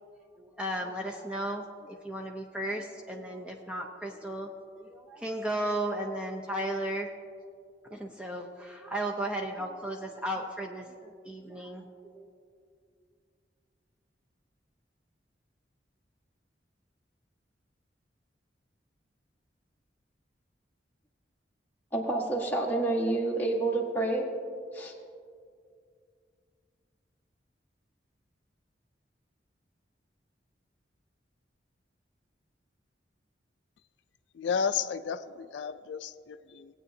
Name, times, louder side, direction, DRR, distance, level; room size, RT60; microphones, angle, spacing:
voice 1, 0.4-7.1 7.9-11.8 12.1-12.3, right 1 dB, 5° right, 0.5 m, -35 dB
voice 2, 21.9-24.3 24.7-24.9, right 2 dB, 10° left, 1.3 m, -28 dB
voice 3, 34.4-36.7, left 6 dB, 75° left, 0.3 m, -32 dB
18.5 x 8.7 x 2.7 m
head